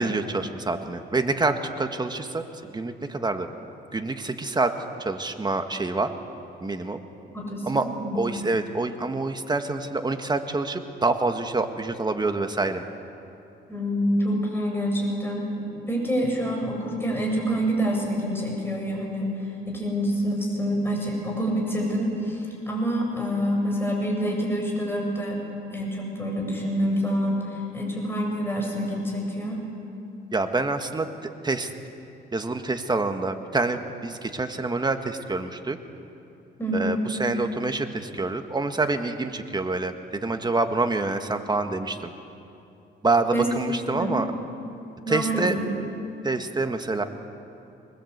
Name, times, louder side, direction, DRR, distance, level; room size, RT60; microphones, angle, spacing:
voice 1, 0.0-3.5 3.9-4.7 5.0-6.1 6.6-7.0 7.6-7.9 8.1-12.8 30.3-31.1 31.4-31.7 32.3-35.8 36.7-42.1 43.0-44.3 45.1-45.5 46.2-47.0, right 3 dB, 20° right, 6 dB, 1.7 m, -26 dB
voice 2, 7.3-8.2 13.7-15.5 15.9-25.4 25.7-29.6 36.6-37.0 43.3-43.5 43.9-44.1 45.0-45.7, equal, 10° left, 0 dB, 7.4 m, -27 dB
24.0 x 20.5 x 8.2 m, 2.8 s
cardioid pair, 90°, 20 cm